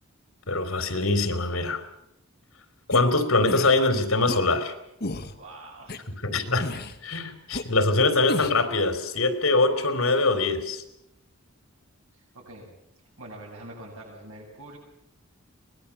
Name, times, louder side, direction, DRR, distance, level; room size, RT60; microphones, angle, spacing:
voice 1, 0.5-1.8 2.9-4.7 6.2-6.7 7.0-10.8, left 3 dB, 85° left, 9 dB, 3.5 m, -23 dB
sound 1, 2.9-3.0 3.5-3.8 4.3-4.4 5.0-5.3 5.9-6.0 6.6-7.0 7.5-7.6 8.3-8.6, left 2 dB, 50° left, 1.6 m, -32 dB
voice 2, 5.3-6.0 12.1-12.7 13.2-14.8, right 1 dB, 90° right, -6 dB, 7.8 m, -44 dB
24.0 x 20.0 x 7.2 m, 0.80 s
head